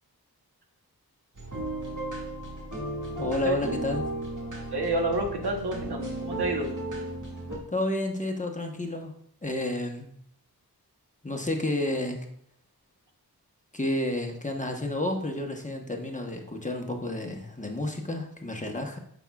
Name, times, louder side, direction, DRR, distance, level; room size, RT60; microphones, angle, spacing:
sound 1, 1.4-7.6, right 1 dB, 50° right, 2.1 m, -34 dB
voice 1, 3.2-4.1 7.7-9.1 9.4-10.1 11.2-12.2 13.7-19.0, left 1 dB, 20° left, 2 dB, 1.1 m, -30 dB
voice 2, 4.7-6.7, right 2 dB, 90° right, 2 dB, 1.2 m, -29 dB
9.8 x 6.2 x 2.4 m, 0.66 s
wide cardioid pair, 70°, 38 cm